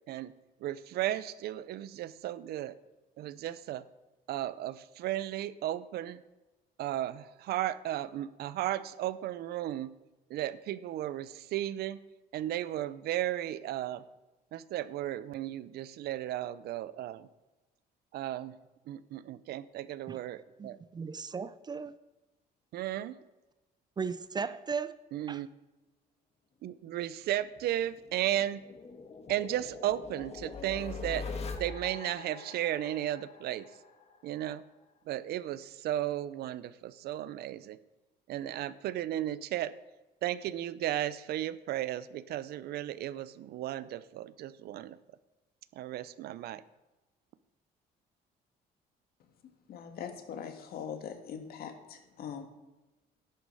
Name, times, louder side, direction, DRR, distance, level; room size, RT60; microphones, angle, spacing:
voice 1, 0.6-2.8 3.2-3.9 4.3-6.2 6.8-9.9 10.3-12.0 12.3-14.0 14.5-17.3 18.1-18.6 18.9-20.8 22.7-23.2 25.1-25.5 26.6-28.6 29.3-33.8 34.2-34.6 35.1-37.8 38.3-39.7 40.2-45.0 45.7-46.6, right 13 dB, 70° right, 0.6 m, -35 dB
voice 2, 20.6-21.9 24.0-24.9 25.3-25.4, right 5 dB, 25° right, 0.5 m, -36 dB
sound 1, 27.6-34.4, left 4 dB, 40° left, 1.6 m, -43 dB
voice 3, 49.7-52.4, left 7 dB, 65° left, 1.7 m, -41 dB
11.0 x 9.4 x 5.5 m
cardioid pair, 110°, 17 cm